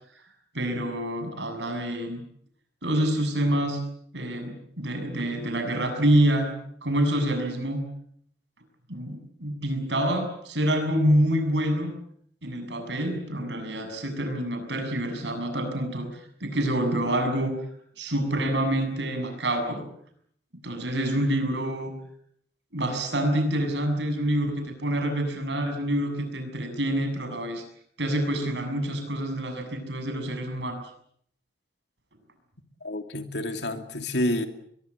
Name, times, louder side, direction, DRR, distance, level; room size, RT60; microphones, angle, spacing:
voice 1, 0.5-2.2 2.8-3.8 4.1-6.5 6.8-7.8 8.9-11.9 12.4-17.5 18.0-19.8 20.6-21.9 22.7-27.6 28.0-30.8, right 1 dB, 85° right, 6 dB, 7.1 m, -27 dB
voice 2, 32.8-34.5, left 1 dB, 75° left, 6 dB, 2.7 m, -29 dB
22.5 x 22.5 x 8.4 m, 0.67 s
head